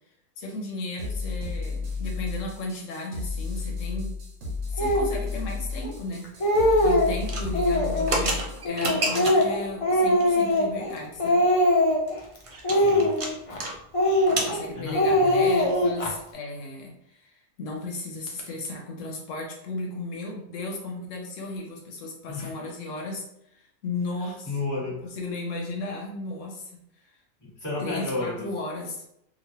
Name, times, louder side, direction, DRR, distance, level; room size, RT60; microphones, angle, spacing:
voice 1, 0.4-4.1 4.7-6.2 6.8-11.4 14.5-24.5 25.1-26.7 27.0-27.1 27.8-29.1, left 2 dB, 85° left, 0 dB, 1.0 m, -35 dB
sound 1, 1.0-8.7, left 4 dB, 85° right, 1.2 m, -32 dB
Speech, 4.8-5.1 5.8-5.9 6.2-7.1 7.5-8.1 8.6-10.9 11.2-12.1 12.6-13.6 13.9-14.6 14.9-16.1, left 1 dB, 45° left, 0.4 m, -22 dB
sound 2, 7.2-9.6 10.2-10.6 10.9-11.0 11.3-11.4 11.7-13.7 14.0-14.6, right 2 dB, 60° right, 0.3 m, -30 dB
voice 2, 12.7-13.1 14.5-15.5 22.3-22.5 24.2-25.0 27.4-28.5, left 3 dB, 15° left, -8 dB, 1.3 m, -33 dB
3.0 x 2.4 x 2.9 m, 0.77 s
omnidirectional pair, 1.3 m